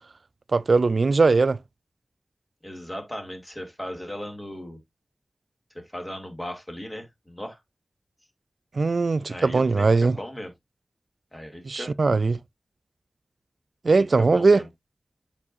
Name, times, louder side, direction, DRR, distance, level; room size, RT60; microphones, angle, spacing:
voice 1, 0.5-1.6 8.7-10.2 11.7-12.4 13.8-14.6, right 3 dB, 75° right, 0.3 m, -20 dB
voice 2, 2.6-4.8 5.7-7.6 9.3-10.5 11.3-11.9 14.0-14.7, equal, 20° left, 2.8 m, -37 dB
8.5 x 5.3 x 2.7 m
wide cardioid pair, 55°, 0 cm